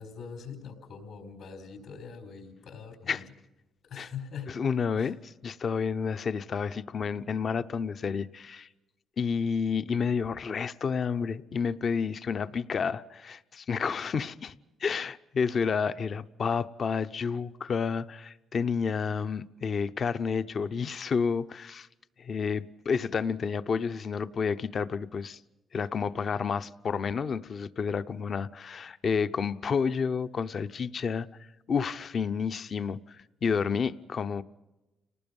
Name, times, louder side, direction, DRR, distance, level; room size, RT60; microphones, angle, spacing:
voice 1, 0.0-3.2 3.9-4.6 5.0-5.1, left 6 dB, 75° left, 4.8 m, -43 dB
voice 2, 4.5-8.7 9.2-14.5 14.8-21.9 22.2-25.4 25.7-31.3 31.7-34.4, left 6 dB, 50° left, 0.7 m, -30 dB
29.5 x 19.5 x 5.4 m
cardioid pair, 90°, 0 cm